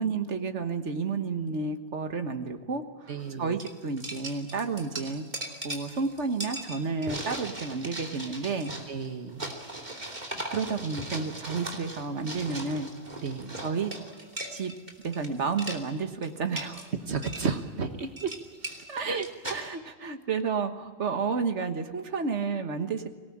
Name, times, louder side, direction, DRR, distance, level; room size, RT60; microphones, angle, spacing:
voice 1, 0.0-8.7 10.5-12.9 13.6-13.9 14.5-14.7 15.0-16.9 18.9-19.2 19.5-23.1, right 4 dB, 85° right, 7 dB, 1.8 m, -31 dB
voice 2, 3.1-3.5 8.9-9.5 13.2-13.5 17.1-18.3 19.1-19.3, right 5 dB, 70° right, 7 dB, 1.6 m, -32 dB
sound 1, 3.2-3.3 3.6-15.3 15.5-15.8 16.2-16.9 17.2-17.5 18.0-19.6, right 1 dB, 40° right, 3.1 m, -38 dB
25.0 x 18.5 x 8.7 m, 1.4 s
omnidirectional pair, 1.2 m